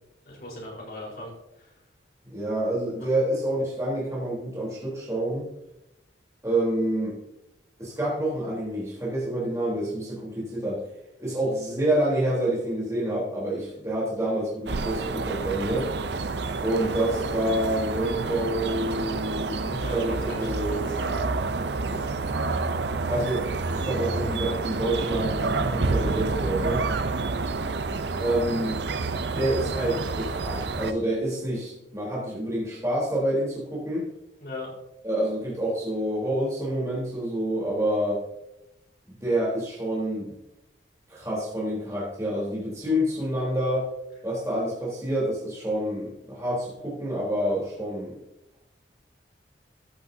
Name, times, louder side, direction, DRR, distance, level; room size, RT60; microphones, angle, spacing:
voice 1, 0.3-1.3 1.6-1.7 3.0-3.1 19.7-21.3 34.4-34.7, left 1 dB, 55° left, -3 dB, 4.6 m, -39 dB
voice 2, 2.3-5.5 6.4-7.2 7.8-10.8 11.2-15.9 16.6-20.9 21.9-22.1 23.1-26.8 28.2-28.8 29.3-34.1 35.0-38.2 39.1-40.3 41.1-43.9 44.2-48.2, right 1 dB, 15° right, -6 dB, 3.7 m, -28 dB
sound 1, 14.7-30.9, right 3 dB, 65° right, 0.6 m, -29 dB
14.0 x 11.0 x 2.8 m, 0.89 s
head